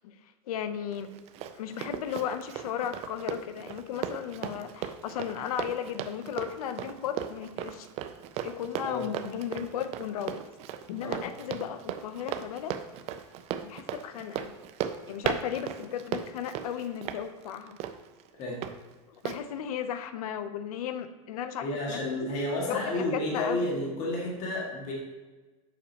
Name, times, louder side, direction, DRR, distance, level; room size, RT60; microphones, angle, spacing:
voice 1, 0.5-1.1 1.5-7.9 8.4-10.4 10.9-12.7 13.6-14.5 15.1-17.8 19.2-22.0 22.7-23.6, left 9 dB, 80° left, 10 dB, 0.6 m, -35 dB
Run, 0.9-18.7 19.3-19.4, right 10 dB, 35° right, 0.4 m, -37 dB
voice 2, 21.6-24.9, left 1 dB, 40° left, -3 dB, 1.8 m, -31 dB
7.2 x 5.4 x 2.9 m, 1.2 s
supercardioid pair, 135°, 19 cm